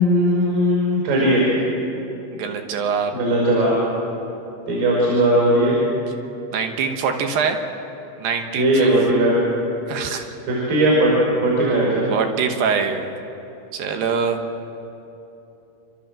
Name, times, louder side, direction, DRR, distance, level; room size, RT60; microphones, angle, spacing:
voice 1, 0.0-1.4 3.1-3.7 4.7-5.7 8.6-9.4 10.5-11.1 11.4-12.1, right 1 dB, 55° right, -4 dB, 7.1 m, -18 dB
voice 2, 2.3-3.1 6.5-7.6 8.2-8.9 9.9-10.3 12.1-13.1 13.7-14.4, right 6 dB, 75° right, 5 dB, 2.2 m, -23 dB
29.5 x 13.0 x 7.5 m, 2.9 s
omnidirectional pair, 5.6 m